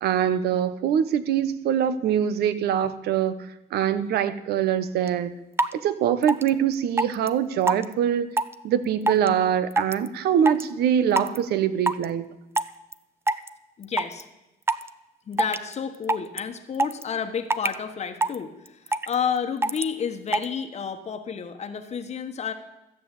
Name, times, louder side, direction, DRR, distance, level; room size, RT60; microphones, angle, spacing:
voice 1, 0.0-3.4 3.7-5.3 5.7-8.3 8.6-12.3, right 9 dB, 70° right, 14 dB, 1.0 m, -23 dB
sound 1, 5.1-5.2 5.6-5.7 6.2-6.5 7.0-7.3 7.7-7.9 8.4-8.5 9.1-9.3 9.7-10.1 10.5-10.6 11.2-11.4 11.9-12.0 12.6-12.9 13.3-13.5 13.8-14.2 14.7-14.9 15.4-15.7 16.0-16.4 16.7-17.0 17.5-17.7 18.2-18.4 18.7-19.1 19.6-19.8 20.3-20.4, right 2 dB, 15° right, 0.6 m, -23 dB
voice 2, 13.8-14.3 15.3-22.5, left 7 dB, 40° left, 6 dB, 1.2 m, -30 dB
14.0 x 7.6 x 8.2 m, 0.96 s
cardioid pair, 110°, 17 cm